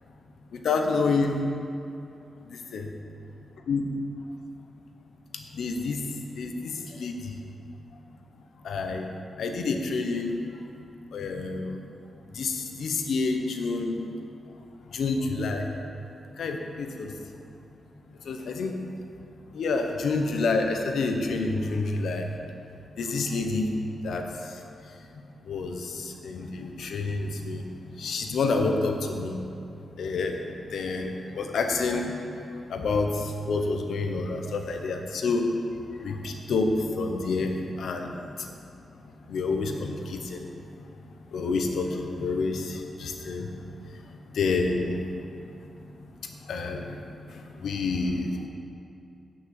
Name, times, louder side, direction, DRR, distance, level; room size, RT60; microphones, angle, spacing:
voice 1, 0.5-1.4 2.7-2.8 3.7-3.8 5.6-6.0 6.4-7.2 8.6-9.0 9.4-10.3 11.1-11.8 12.4-14.0 14.9-15.7 16.4-17.1 18.3-18.7 19.5-22.2 23.0-23.7 24.0-24.2 25.5-27.6 28.0-29.3 30.0-30.3 30.7-32.1 32.7-35.5 36.0-36.7 37.0-37.5 37.8-38.1 39.3-40.5 41.3-43.5 44.3-45.0 46.5-47.0 47.6-48.3, left 3 dB, 75° left, 3 dB, 1.0 m, -28 dB
9.3 x 6.0 x 7.8 m, 2.6 s
wide cardioid pair, 160°, 0 cm